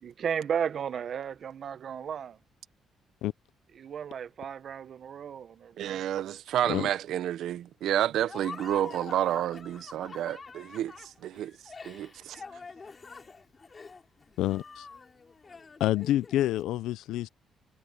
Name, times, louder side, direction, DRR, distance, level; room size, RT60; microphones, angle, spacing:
voice 1, 0.0-2.4 3.7-6.0, right 7 dB, 60° right, 1.0 m, -34 dB
voice 2, 5.8-10.9 11.2-11.5 11.8-12.4, right 11 dB, 80° right, 1.1 m, -30 dB
Laughter, 8.3-16.5, left 4 dB, 35° left, 4.6 m, -46 dB
voice 3, 14.4-14.9 15.8-17.3, left 14 dB, 90° left, 0.6 m, -28 dB
cardioid pair, 90°, 0 cm